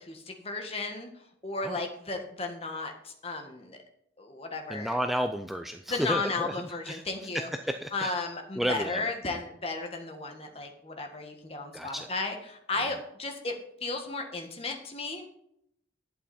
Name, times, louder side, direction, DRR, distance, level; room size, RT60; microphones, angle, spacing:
voice 1, 0.0-3.8 4.2-5.0 5.9-7.5 7.9-13.5 13.8-15.3, left 3 dB, 30° left, 3 dB, 1.6 m, -34 dB
voice 2, 4.7-6.5 6.9-7.0 7.3-8.1 8.6-9.1 11.7-12.1 12.8-12.9, equal, ahead, 6 dB, 0.4 m, -32 dB
11.5 x 8.5 x 4.2 m, 0.75 s
head